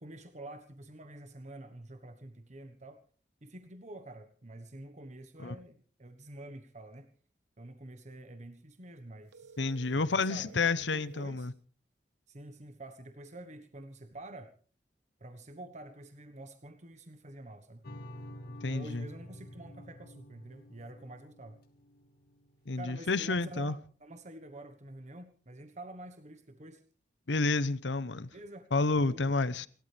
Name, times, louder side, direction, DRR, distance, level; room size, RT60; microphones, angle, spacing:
voice 1, 0.0-3.0 3.4-7.1 7.6-9.6 9.9-11.5 12.3-14.5 15.2-17.9 18.7-21.6 22.8-26.8 28.3-28.7 29.0-29.4, right 1 dB, 40° right, 1.2 m, -48 dB
sound 1, 9.3-11.4, right 5 dB, 75° right, 1.0 m, -53 dB
voice 2, 9.6-11.5 18.6-19.1 22.7-23.7 27.3-28.3 28.7-29.7, left 3 dB, 85° left, 0.9 m, -30 dB
sound 2, 17.8-23.0, equal, 60° left, 2.0 m, -49 dB
30.0 x 13.0 x 3.4 m
head